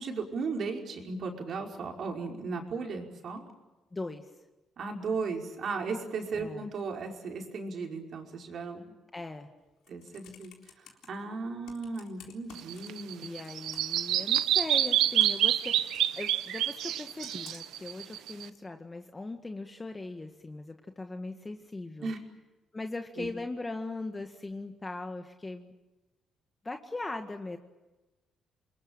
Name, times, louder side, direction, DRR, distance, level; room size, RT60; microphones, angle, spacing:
voice 1, 0.0-3.4 4.8-8.8 9.9-10.5 10.8-13.3 22.0-22.2 23.2-23.3, right 4 dB, 60° right, 2 dB, 5.3 m, -36 dB
voice 2, 3.9-4.3 6.3-6.7 9.1-9.5 13.2-22.1 22.7-25.7 26.6-27.6, left 2 dB, 20° left, 5 dB, 1.8 m, -39 dB
Computer keyboard, 9.6-11.1 11.6-13.2 13.4-14.0 14.5-16.1 17.2-17.8 18.5-18.6, left 9 dB, 85° left, 3.9 m, -53 dB
Bird vocalization bird call bird song, 12.6-18.5, right 12 dB, 85° right, 1.2 m, -28 dB
28.0 x 21.0 x 9.0 m, 1.1 s
cardioid pair, 90°, 0 cm